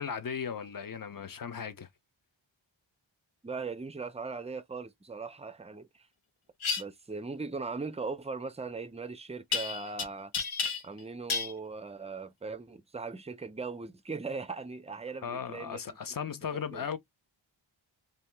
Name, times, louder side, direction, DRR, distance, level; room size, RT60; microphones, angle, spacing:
voice 1, 0.0-1.9 15.2-17.0, left 7 dB, 45° left, 0.6 m, -36 dB
voice 2, 3.4-6.1 6.8-10.3 10.8-16.9, right 4 dB, 15° right, 0.3 m, -39 dB
sound 1, 6.6-6.8 9.5-10.0 10.3-11.0 11.3-11.5, left 5 dB, 85° left, 0.9 m, -31 dB
2.7 x 2.2 x 3.2 m
wide cardioid pair, 75°, 48 cm